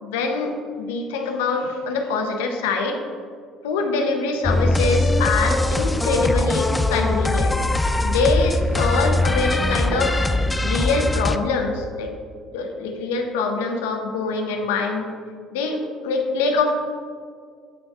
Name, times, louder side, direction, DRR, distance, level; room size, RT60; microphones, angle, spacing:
voice 1, 0.0-3.0 3.6-7.5 8.0-10.2 10.6-12.1 12.5-15.1 15.5-16.7, left 3 dB, 90° left, 3 dB, 0.9 m, -24 dB
sound 1, 4.4-11.4, left 2 dB, 15° left, 0.4 m, -21 dB
8.7 x 5.4 x 3.6 m, 2.1 s
supercardioid pair, 75°, 0 cm